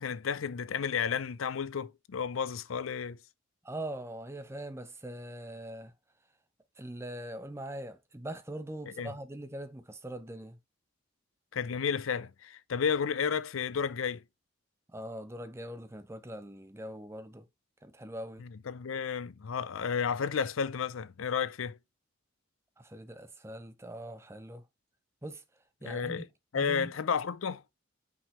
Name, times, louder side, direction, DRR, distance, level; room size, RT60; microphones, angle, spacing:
voice 1, 0.0-3.2 8.9-9.1 11.5-14.2 18.4-21.8 25.8-26.3 26.5-27.6, left 6 dB, 85° left, 0.5 m, -32 dB
voice 2, 3.6-5.9 6.8-10.6 14.9-17.5 17.8-18.4 22.8-24.6 25.2-25.4 25.8-26.2 26.5-26.9, right 1 dB, 15° right, 0.6 m, -42 dB
5.7 x 5.3 x 3.1 m
head